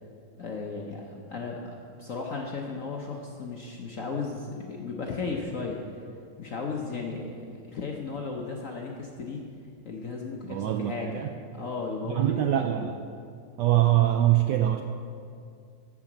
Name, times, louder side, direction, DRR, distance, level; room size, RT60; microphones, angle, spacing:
voice 1, 0.4-5.8 6.4-9.4 9.8-12.8, left 4 dB, 60° left, 0 dB, 0.9 m, -35 dB
voice 2, 10.5-11.3 12.0-13.0 13.6-14.8, right 13 dB, 75° right, 5 dB, 1.0 m, -23 dB
14.0 x 4.9 x 7.3 m, 2.3 s
omnidirectional pair, 2.3 m